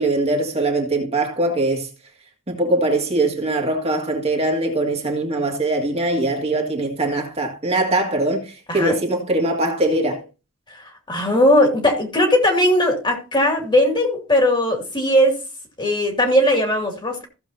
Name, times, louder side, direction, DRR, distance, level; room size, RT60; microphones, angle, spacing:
voice 1, 0.0-1.9 2.5-10.2, right 2 dB, 30° right, 1.9 m, -22 dB
voice 2, 11.1-15.4 15.8-17.2, left 1 dB, 25° left, 2.3 m, -18 dB
15.5 x 7.1 x 2.8 m
head